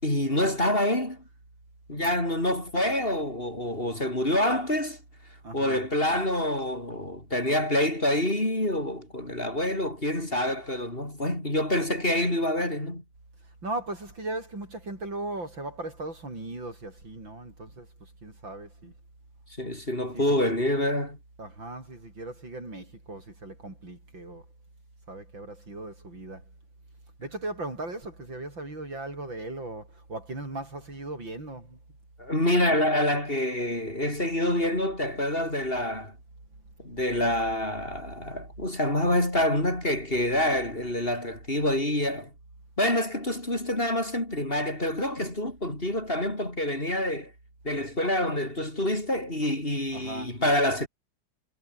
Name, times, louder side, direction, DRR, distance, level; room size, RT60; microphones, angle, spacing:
voice 1, 0.0-1.2 1.9-5.0 5.5-13.0 19.6-21.2 32.2-36.1 36.8-42.3 42.8-47.3 47.6-50.9, left 1 dB, 25° left, 6.1 m, -27 dB
voice 2, 5.4-5.8 13.6-17.9 18.2-18.9 20.1-20.5 21.4-24.4 25.1-26.4 27.2-31.8 49.9-50.3, right 2 dB, 70° right, 8.9 m, -38 dB
omnidirectional pair, 2.1 m